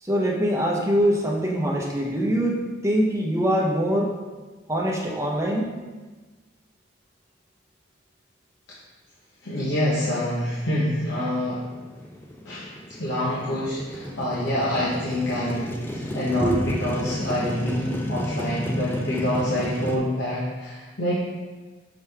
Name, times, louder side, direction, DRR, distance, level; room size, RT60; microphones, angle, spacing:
voice 1, 0.0-4.2 4.7-5.7 16.4-16.5, equal, 15° right, -2 dB, 0.9 m, -23 dB
voice 2, 9.4-11.6 12.4-12.7 13.0-21.2, left 1 dB, 65° left, -8 dB, 1.1 m, -26 dB
Motorcycle, 10.6-20.0, equal, 10° left, 0.4 m, -33 dB
6.0 x 5.1 x 3.4 m, 1.3 s
head